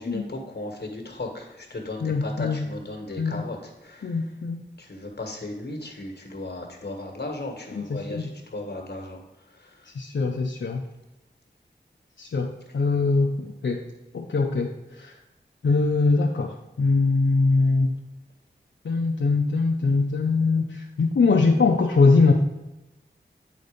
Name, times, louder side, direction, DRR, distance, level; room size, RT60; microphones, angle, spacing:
voice 1, 0.0-4.3 4.8-9.2 9.5-9.9, left 2 dB, 60° left, 2 dB, 1.5 m, -36 dB
voice 2, 2.0-2.7 3.2-3.4 4.0-4.6 7.7-8.3 10.0-10.8 12.2-13.8 14.1-15.2 15.6-17.9 18.8-22.3, left 3 dB, 85° left, 1 dB, 0.6 m, -22 dB
9.2 x 4.1 x 5.1 m, 1.0 s
wide cardioid pair, 60°, 19 cm